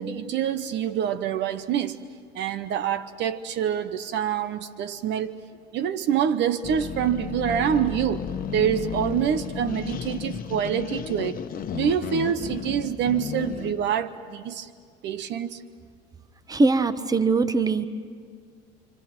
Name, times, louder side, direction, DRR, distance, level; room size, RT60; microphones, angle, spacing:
voice 1, 0.0-2.0 2.3-5.4 5.7-11.4 11.7-14.7 15.0-15.6, right 9 dB, 60° right, 1.0 m, -26 dB
sound 1, 6.6-13.8, left 8 dB, 45° left, 1.2 m, -33 dB
voice 2, 16.5-17.8, right 3 dB, 20° right, 1.2 m, -21 dB
28.5 x 25.5 x 6.1 m
supercardioid pair, 80°, 21 cm